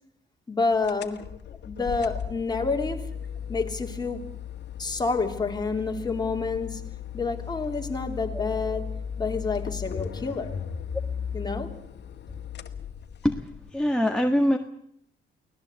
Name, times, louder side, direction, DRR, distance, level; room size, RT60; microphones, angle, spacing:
voice 1, 0.5-1.2 1.6-3.1 3.5-4.3 4.8-6.8 7.1-10.6 11.3-11.7, left 4 dB, 20° left, 3.3 m, -28 dB
sound 1, 0.8-13.7, left 7 dB, 60° left, 1.8 m, -36 dB
voice 2, 13.7-14.6, equal, 5° left, 1.6 m, -23 dB
24.0 x 18.0 x 8.2 m
cardioid pair, 90°, 20 cm